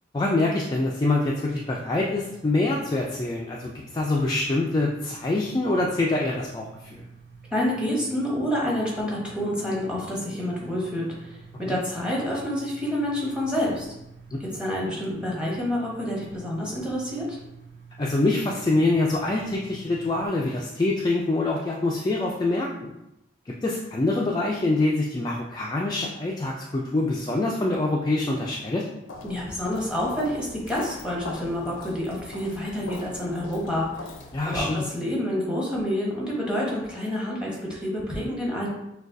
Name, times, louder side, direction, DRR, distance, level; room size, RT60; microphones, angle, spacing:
voice 1, 0.1-7.1 11.7-11.8 18.0-22.9 23.5-28.9 34.3-34.8, left 2 dB, 20° left, -2 dB, 0.3 m, -25 dB
sound 1, 0.9-20.3, right 5 dB, 65° right, 0.7 m, -48 dB
voice 2, 7.5-13.9 14.4-17.4 29.2-34.1 34.4-38.7, left 1 dB, 5° right, -4 dB, 0.9 m, -28 dB
Walk footsteps, 29.1-34.6, left 2 dB, 80° left, 0.5 m, -41 dB
6.2 x 2.3 x 2.6 m, 0.88 s
head